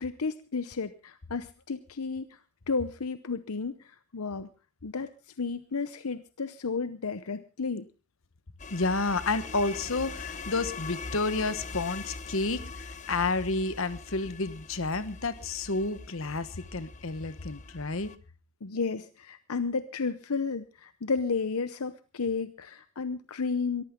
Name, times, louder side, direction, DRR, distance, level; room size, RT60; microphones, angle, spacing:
voice 1, 0.0-2.4 2.7-4.5 4.8-5.1 5.4-7.9 18.6-23.8, left 4 dB, 80° left, 12 dB, 0.8 m, -32 dB
sound 1, 8.6-18.2, left 4 dB, 35° left, 0.9 m, -42 dB
voice 2, 8.7-18.1, left 3 dB, 65° left, 13 dB, 1.2 m, -30 dB
22.0 x 14.5 x 3.7 m, 0.32 s
head